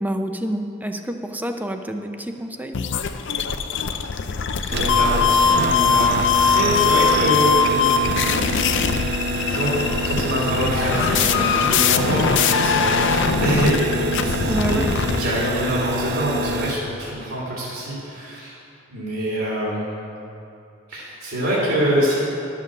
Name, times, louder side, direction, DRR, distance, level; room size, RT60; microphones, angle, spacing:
voice 1, 0.0-2.8 14.4-14.9, right 1 dB, 10° right, 6 dB, 0.6 m, -27 dB
sound 1, 2.7-15.2, left 6 dB, 60° left, 0.5 m, -21 dB
voice 2, 4.6-6.1 6.3-8.4 9.5-9.7 10.0-18.6 18.9-20.0 20.9-22.2, right 1 dB, 75° right, -7 dB, 2.8 m, -25 dB
sound 2, 4.7-16.7, right 1 dB, 50° right, 0.7 m, -27 dB
11.5 x 7.5 x 6.6 m, 2.7 s
head